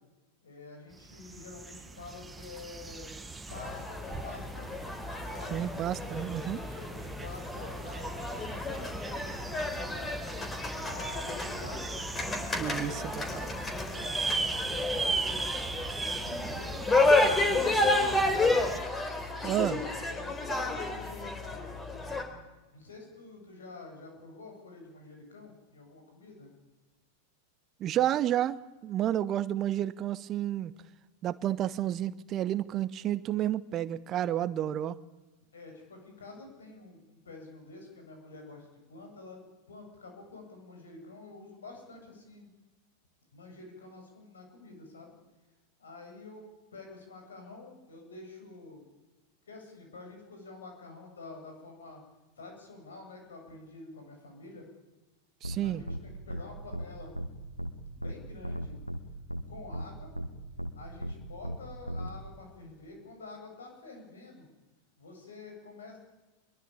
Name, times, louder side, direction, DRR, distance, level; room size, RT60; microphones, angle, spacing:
voice 1, 0.4-3.2 3.5-4.8 5.3-5.6 6.0-10.0 10.8-11.9 12.6-13.3 13.8-16.1 16.4-18.0 18.5-18.8 19.6-21.8 22.7-26.5 35.5-42.5 43.3-45.1 45.8-46.5 46.7-48.9 49.5-52.0 52.4-54.6 55.6-57.1 57.9-58.8 59.5-60.1 60.7-64.5 65.0-66.0, left 3 dB, 65° left, 3 dB, 8.0 m, -48 dB
sound 1, 0.9-18.8, right 3 dB, 10° right, 1.5 m, -38 dB
sound 2, 3.5-22.2, left 2 dB, 15° left, 4.1 m, -31 dB
voice 2, 5.5-6.6 12.6-13.5 19.4-19.8 27.8-30.7 31.2-35.0 55.4-55.8, right 12 dB, 30° right, 17 dB, 0.9 m, -30 dB
sound 3, 55.4-55.6 55.9-56.0 56.3-56.4 56.7-56.9 57.1-57.3 57.6-57.7 58.0-58.1 58.4-59.0 59.3-59.4 59.7-59.8 60.1-60.3 60.6-60.7 61.0-61.1 61.4-61.6 61.9-62.1, equal, 90° right, 1.7 m, -35 dB
24.0 x 22.0 x 8.8 m, 1.2 s
figure-of-eight pair, 90°, 0 cm